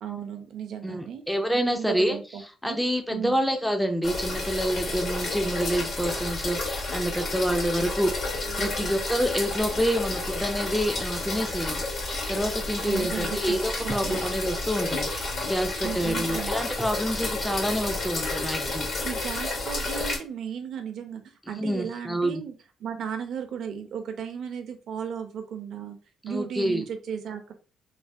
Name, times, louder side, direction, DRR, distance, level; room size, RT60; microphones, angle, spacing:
voice 1, 0.0-1.2 1.5-2.8 3.1-3.3 8.5-8.7 12.9-13.6 13.8-14.2 15.8-16.5 19.0-22.5 22.8-26.0 26.2-27.5, right 8 dB, 70° right, 7 dB, 0.6 m, -35 dB
voice 2, 0.8-2.2 2.6-8.1 8.6-11.8 12.3-18.9 21.6-22.4 26.3-26.8, equal, ahead, 5 dB, 0.5 m, -27 dB
sound 1, 4.0-20.2, left 2 dB, 60° left, 1.4 m, -31 dB
3.2 x 2.2 x 2.6 m, 0.34 s
cardioid pair, 90°, 0 cm